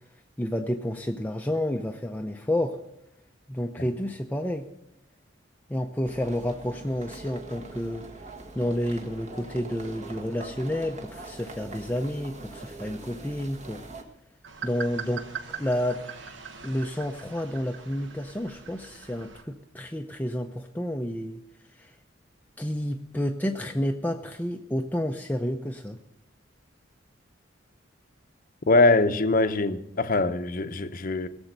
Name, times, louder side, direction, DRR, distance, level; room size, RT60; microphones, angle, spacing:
voice 1, 0.4-2.8 3.5-4.7 5.7-8.1 8.5-13.8 14.6-15.3 15.6-16.0 16.6-21.4 21.7-21.9 22.6-26.0, left 1 dB, 10° left, 0.6 m, -30 dB
sound 1, 6.0-14.0, right 2 dB, 40° right, 1.5 m, -43 dB
sound 2, 14.4-19.4, right 5 dB, 70° right, 1.2 m, -41 dB
voice 2, 28.7-31.3, left 2 dB, 45° left, 0.7 m, -22 dB
17.5 x 7.1 x 6.6 m
head